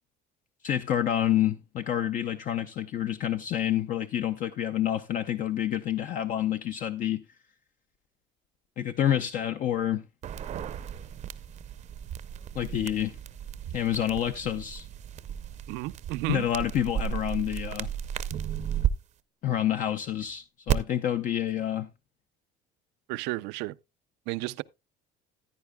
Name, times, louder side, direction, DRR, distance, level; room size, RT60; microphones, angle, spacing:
voice 1, 0.6-7.2 8.8-10.0 12.5-13.2 13.7-14.9 16.3-17.9 19.4-21.9, left 11 dB, 50° left, 0.5 m, -28 dB
sound 1, 10.2-18.9 20.7-20.8, right 10 dB, 45° right, 0.6 m, -34 dB
voice 2, 15.7-16.5 23.1-23.8 24.3-24.6, right 19 dB, 80° right, 0.4 m, -32 dB
15.0 x 9.6 x 2.2 m
cardioid pair, 125°, 17 cm